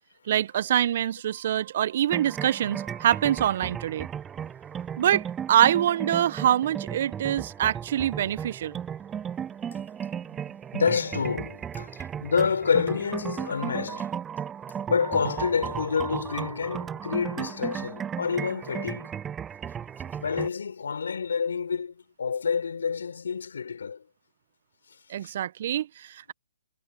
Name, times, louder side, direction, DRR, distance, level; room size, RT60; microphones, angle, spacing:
voice 1, 0.3-4.1 5.0-8.8 25.1-26.3, right 11 dB, 50° right, 0.9 m, -25 dB
sound 1, 2.1-20.5, right 8 dB, 15° right, 7.1 m, -35 dB
voice 2, 10.7-14.1 14.9-19.1 20.2-24.0 25.2-25.3, left 6 dB, 70° left, 4.2 m, -28 dB
figure-of-eight pair, 130°, 0 cm